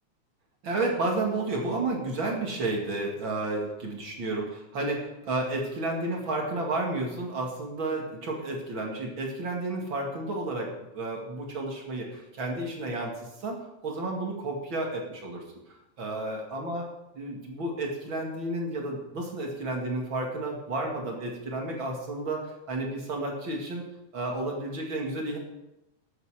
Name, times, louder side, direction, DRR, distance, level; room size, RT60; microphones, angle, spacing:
voice 1, 0.6-13.1 13.4-13.6 13.8-15.4 16.0-16.8 17.1-23.8 24.1-25.4, right 2 dB, 40° right, 0 dB, 2.7 m, -31 dB
14.0 x 8.2 x 5.0 m, 0.91 s
omnidirectional pair, 3.5 m